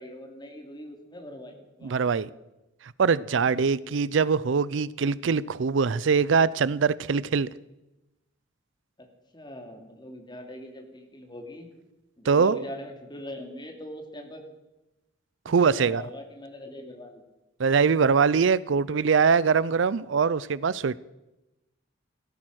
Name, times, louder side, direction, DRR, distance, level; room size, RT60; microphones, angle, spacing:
voice 1, 0.0-2.1 3.3-4.2 9.0-9.1 9.3-11.7 12.2-14.4 15.4-17.2 17.6-17.8, left 1 dB, 25° left, 2.8 m, -42 dB
voice 2, 1.8-2.3 3.0-7.5 12.3-12.6 15.5-16.0 17.6-21.0, right 5 dB, 75° right, 0.5 m, -23 dB
17.0 x 13.5 x 6.3 m
head